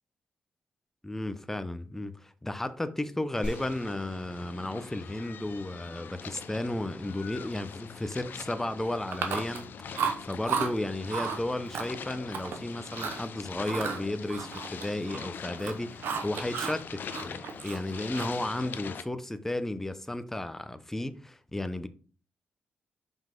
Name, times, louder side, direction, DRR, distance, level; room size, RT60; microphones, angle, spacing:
voice 1, 1.0-9.7 10.2-21.9, left 1 dB, 10° left, 0.7 m, -34 dB
sound 1, 3.3-19.0, left 7 dB, 60° left, 0.6 m, -43 dB
sound 2, 3.4-6.3, equal, 25° right, 3.3 m, -44 dB
Chewing mastication, 9.1-9.7 9.9-10.7 11.1-11.4 11.7-12.6 12.9-13.2 13.6-15.3 15.5-16.8 17.1-18.5, right 6 dB, 80° right, 1.0 m, -33 dB
5.6 x 5.4 x 3.8 m
cardioid pair, 80°, 4 cm